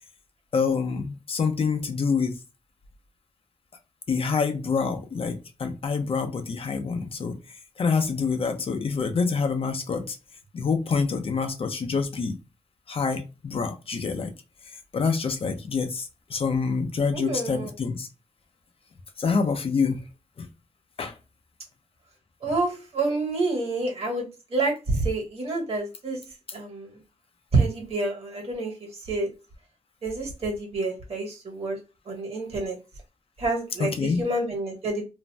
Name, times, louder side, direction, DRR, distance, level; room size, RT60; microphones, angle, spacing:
voice 1, 0.5-2.4 4.1-10.2 10.5-12.3 12.9-14.3 14.9-18.1 19.2-20.0 20.4-20.5 21.0-21.2 33.8-34.2, left 5 dB, 50° left, 0.5 m, -26 dB
voice 2, 17.1-17.7 22.4-26.2 26.5-27.0 27.5-28.7 29.1-29.3 30.0-31.8 32.1-32.8 33.4-35.1, right 2 dB, 55° right, 1.3 m, -28 dB
2.5 x 2.0 x 3.2 m
wide cardioid pair, 145°, 12 cm